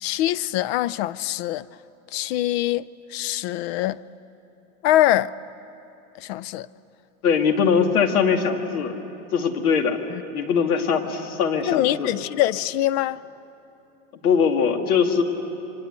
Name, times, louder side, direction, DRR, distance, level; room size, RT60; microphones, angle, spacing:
voice 1, 0.0-1.6 2.1-2.8 3.1-4.0 4.8-5.3 6.2-6.7 10.1-10.2 11.7-13.2, left 14 dB, 45° left, 0.5 m, -23 dB
voice 2, 7.2-9.0 9.3-10.0 10.3-12.1 14.2-15.2, left 6 dB, 80° left, 2.5 m, -21 dB
29.0 x 24.0 x 8.2 m
supercardioid pair, 130°, 44 cm